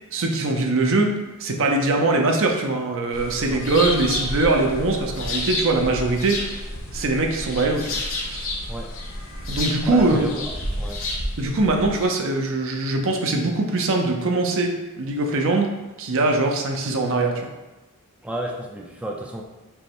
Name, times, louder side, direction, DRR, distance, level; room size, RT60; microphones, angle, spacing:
voice 1, 0.1-6.6 6.9-8.4 9.5-10.3 11.4-15.7 16.0-17.5, right 2 dB, 65° right, 3 dB, 0.7 m, -22 dB
sound 1, 3.1-12.1, left 1 dB, 65° left, 1.1 m, -30 dB
voice 2, 9.9-11.0 18.2-19.4, equal, 5° right, -1 dB, 0.4 m, -31 dB
5.4 x 2.1 x 4.5 m, 1.2 s
head